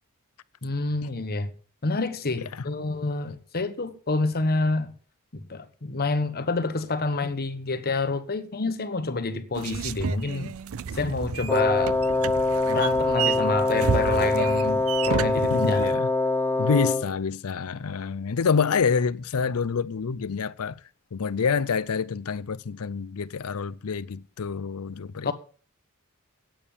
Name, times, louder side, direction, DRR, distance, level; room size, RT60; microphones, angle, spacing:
voice 1, 0.6-1.5 1.8-4.9 5.3-10.5 10.9-12.0 12.7-15.9 25.2-25.3, left 3 dB, 45° left, 1.1 m, -28 dB
sound 1, 9.5-16.0, right 7 dB, 65° right, 0.5 m, -31 dB
Wind instrument woodwind instrument, 11.5-17.2, left 2 dB, 10° left, 0.6 m, -24 dB
voice 2, 15.5-16.1 16.6-20.8 21.1-25.3, left 5 dB, 70° left, 0.5 m, -27 dB
8.9 x 8.7 x 7.1 m
head